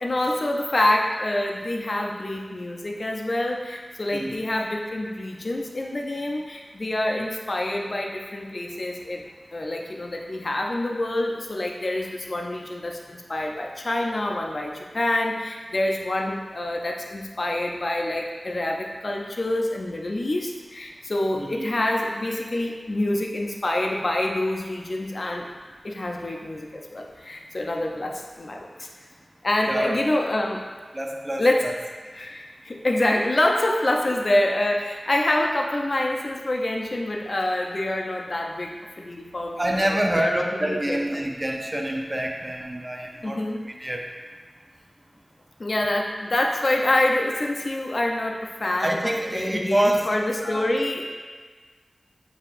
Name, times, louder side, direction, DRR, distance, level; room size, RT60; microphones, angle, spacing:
voice 1, 0.0-9.2 9.5-25.5 25.8-28.9 29.4-30.7 31.4-31.7 32.1-41.0 43.2-43.6 45.6-51.1, left 1 dB, 50° left, 0 dB, 0.5 m, -26 dB
voice 2, 29.7-30.0 30.9-31.7 39.6-44.0 48.8-50.1 50.4-50.7, right 1 dB, 25° right, 1 dB, 0.5 m, -26 dB
6.5 x 2.8 x 2.5 m, 1.5 s
wide cardioid pair, 75°, 0 cm